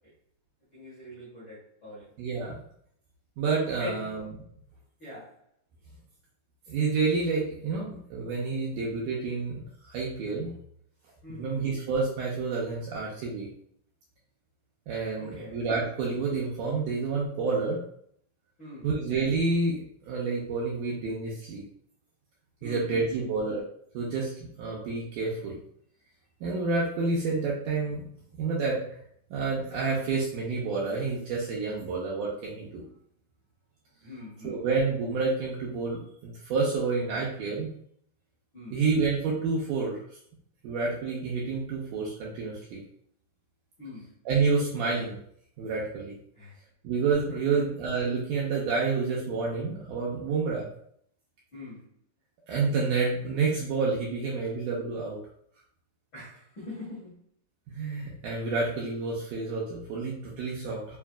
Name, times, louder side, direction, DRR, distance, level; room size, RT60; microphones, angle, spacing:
voice 1, 0.7-2.1 3.8-4.1 5.0-5.4 11.2-11.7 15.2-15.6 18.6-18.9 22.6-23.3 34.0-34.6 38.5-38.8 43.8-44.1 46.3-46.5 47.3-47.6 51.5-51.9 56.1-57.1, left 2 dB, 50° left, -9 dB, 1.4 m, -43 dB
voice 2, 2.2-2.6 3.4-4.3 6.7-10.5 11.3-13.5 14.9-17.8 18.8-19.8 20.1-21.6 22.6-23.6 23.9-25.6 26.4-28.0 28.4-28.8 29.3-32.8 34.4-37.7 38.7-40.0 40.6-42.8 44.3-45.2 45.6-46.1 46.8-50.7 52.5-55.2 57.7-61.0, right 4 dB, 80° right, -4 dB, 1.9 m, -29 dB
5.5 x 2.5 x 2.3 m, 0.66 s
omnidirectional pair, 4.2 m